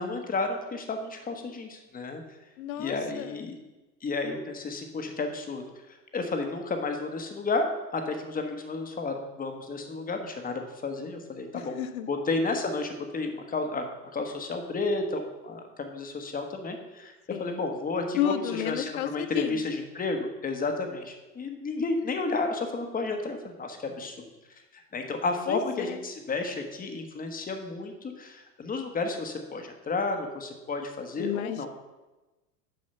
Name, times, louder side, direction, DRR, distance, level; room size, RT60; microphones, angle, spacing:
voice 1, 0.0-2.2 2.8-3.6 4.0-5.6 6.1-7.6 7.9-11.7 12.1-13.8 14.1-18.3 18.7-24.2 24.7-31.7, left 3 dB, 20° left, 5 dB, 1.1 m, -32 dB
voice 2, 2.6-3.5 11.5-12.1 17.3-17.6 18.2-19.6 25.5-26.0 31.2-31.7, left 11 dB, 70° left, 13 dB, 0.7 m, -32 dB
6.6 x 5.6 x 5.5 m, 1.1 s
hypercardioid pair, 100°, 45 cm